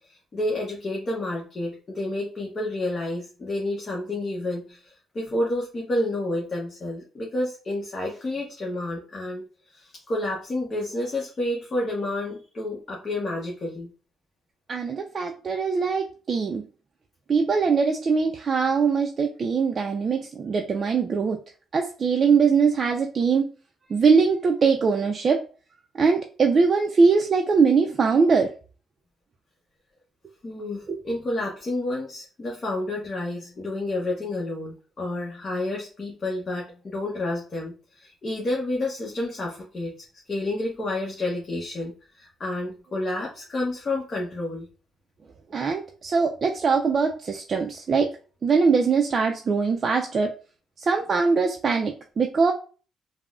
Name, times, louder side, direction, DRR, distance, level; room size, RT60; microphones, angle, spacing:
voice 1, 0.0-9.4 9.7-13.9 30.4-39.9 40.3-44.7, left 1 dB, 40° left, -3 dB, 0.8 m, -30 dB
voice 2, 14.7-16.6 17.3-21.4 21.7-23.5 23.9-25.4 26.0-28.5 30.9-31.0 45.5-48.1 48.4-50.3 50.8-52.5, right 5 dB, 45° right, 3 dB, 0.3 m, -22 dB
3.5 x 2.0 x 2.4 m, 0.37 s
cardioid pair, 90°, 0 cm